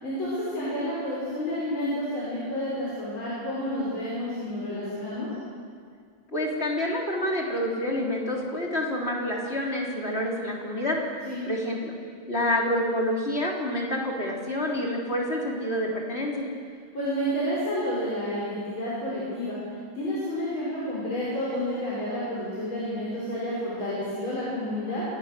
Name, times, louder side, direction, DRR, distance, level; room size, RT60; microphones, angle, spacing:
voice 1, 0.0-5.3 11.3-11.4 16.9-19.6 19.9-25.0, equal, 80° left, -8 dB, 6.5 m, -30 dB
voice 2, 6.3-11.0 11.5-11.9 12.3-16.5, left 1 dB, 30° left, -2 dB, 3.7 m, -28 dB
27.5 x 17.5 x 6.8 m, 2.1 s
omnidirectional pair, 2.2 m